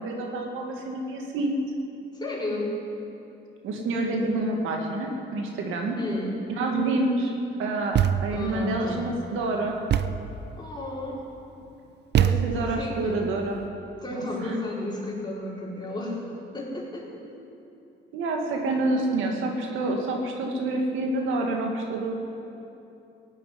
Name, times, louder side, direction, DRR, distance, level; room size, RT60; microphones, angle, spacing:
voice 1, 0.0-1.6 3.6-6.0 6.6-7.3 7.6-9.8 12.1-13.6 14.1-14.6 18.1-22.1, right 2 dB, 90° right, 1 dB, 2.0 m, -28 dB
voice 2, 2.1-2.8 6.0-6.4 8.3-9.1 10.6-11.2 12.3-13.2 14.0-16.2 16.5-17.2, left 1 dB, 20° left, -5 dB, 4.5 m, -33 dB
Thump thud, 7.9-8.5 9.9-10.4 12.1-12.8, right 9 dB, 60° right, 0.6 m, -23 dB
16.5 x 8.4 x 9.5 m, 2.8 s
cardioid pair, 90°, 20 cm